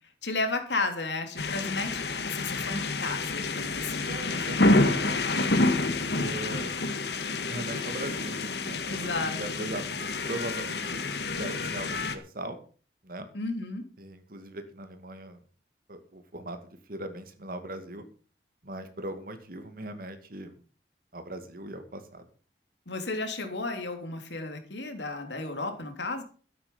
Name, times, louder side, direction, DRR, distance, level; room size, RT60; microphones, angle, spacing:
voice 1, 0.2-4.1 8.9-9.8 13.3-13.8 22.9-26.2, left 3 dB, 85° left, 5 dB, 3.3 m, -33 dB
sound 1, 1.4-12.1, left 2 dB, 70° left, 1.7 m, -28 dB
voice 2, 4.0-5.2 6.2-6.7 7.4-9.1 9.4-9.8 10.2-11.0 11.3-12.6 13.0-13.3 14.0-15.4 15.9-16.6 16.9-18.1 18.6-20.6 21.1-22.3, right 1 dB, 55° right, 8 dB, 2.4 m, -39 dB
13.0 x 10.5 x 5.6 m, 0.39 s
head